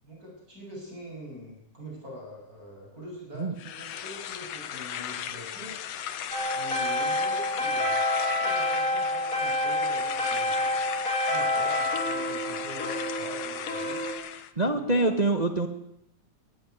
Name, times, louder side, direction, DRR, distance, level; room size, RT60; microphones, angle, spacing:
voice 1, 0.0-5.7 6.5-8.0 8.4-10.8 11.3-14.0 14.6-15.3, equal, 25° right, -2 dB, 7.9 m, -44 dB
sound 1, 3.6-14.5, left 10 dB, 65° left, 2.0 m, -37 dB
sound 2, 6.3-14.1, left 1 dB, 25° left, 6.1 m, -28 dB
voice 2, 14.6-15.7, right 2 dB, 75° right, 6 dB, 0.3 m, -25 dB
22.5 x 13.5 x 9.6 m, 0.80 s
omnidirectional pair, 3.5 m